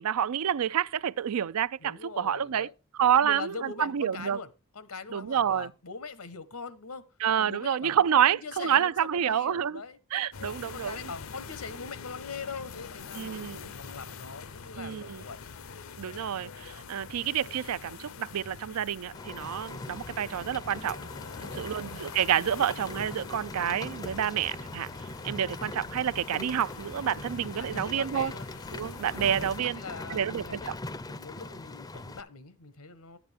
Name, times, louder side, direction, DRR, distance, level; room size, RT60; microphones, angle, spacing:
voice 1, 0.0-2.7 3.0-4.4 5.1-5.7 7.2-9.8 10.1-11.0 13.2-13.7 14.8-15.2 16.0-21.0 21.5-24.9 25.2-28.3 28.7-29.8 30.1-30.6, right 9 dB, 90° right, 0.4 m, -28 dB
voice 2, 1.8-2.7 3.1-7.0 7.4-10.0 10.4-15.4 21.3-21.8 27.6-28.5 29.6-30.8 31.1-33.2, left 4 dB, 90° left, 1.2 m, -42 dB
sound 1, 10.3-29.6, left 5 dB, 70° left, 0.6 m, -45 dB
Rain, 19.1-32.2, left 2 dB, 15° left, 0.4 m, -41 dB
12.0 x 8.8 x 3.5 m
head